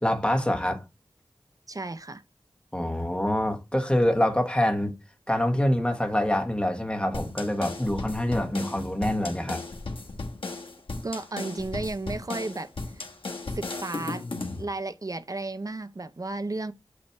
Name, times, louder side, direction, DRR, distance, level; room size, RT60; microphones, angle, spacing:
voice 1, 0.0-0.8 2.7-4.9 5.3-9.6, left 1 dB, 10° left, 1.4 m, -25 dB
voice 2, 1.7-2.2 11.0-13.0 13.6-16.7, right 2 dB, 40° right, 0.6 m, -34 dB
sound 1, 7.1-14.6, left 3 dB, 85° left, 1.2 m, -36 dB
8.4 x 3.0 x 4.4 m
wide cardioid pair, 55°, 9 cm